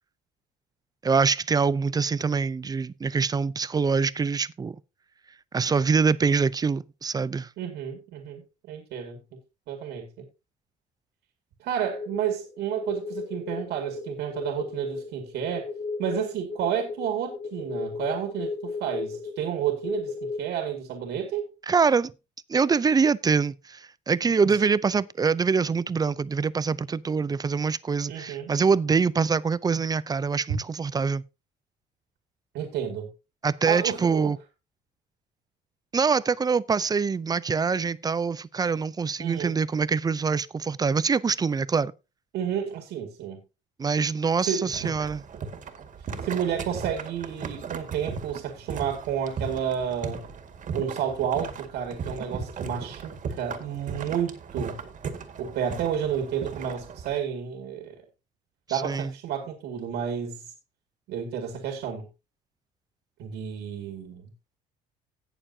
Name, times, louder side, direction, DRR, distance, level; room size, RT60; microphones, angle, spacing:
voice 1, 1.0-4.8 5.5-7.5 21.7-22.1 22.5-31.2 33.4-34.4 35.9-41.9 43.8-45.2 58.7-59.1, right 5 dB, 25° right, 0.5 m, -24 dB
voice 2, 7.6-8.4 8.7-9.2 9.7-10.2 11.6-15.7 16.0-21.5 24.4-24.6 28.1-28.5 32.5-33.1 33.7-34.3 39.2-39.6 42.3-43.4 44.4-44.9 46.0-50.3 50.7-54.8 55.4-58.0 58.7-60.5 61.1-62.1 63.2-64.3, right 8 dB, 80° right, 2.3 m, -31 dB
sound 1, 11.9-20.5, left 4 dB, 60° left, 2.4 m, -35 dB
sound 2, 44.7-57.1, right 5 dB, 50° right, 2.0 m, -37 dB
17.5 x 6.8 x 2.8 m
cardioid pair, 110°, 17 cm